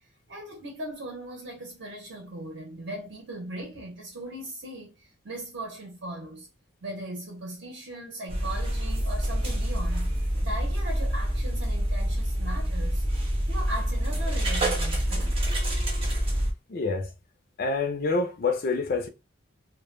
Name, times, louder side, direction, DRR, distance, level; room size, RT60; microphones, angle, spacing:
voice 1, 0.3-6.5 6.8-15.5, right 1 dB, 60° right, 0.8 m, -39 dB
sound 1, 8.3-16.5, equal, 30° right, 0.6 m, -27 dB
voice 2, 16.7-17.1 17.6-19.1, left 3 dB, 45° left, 0.4 m, -27 dB
2.1 x 2.1 x 3.1 m
head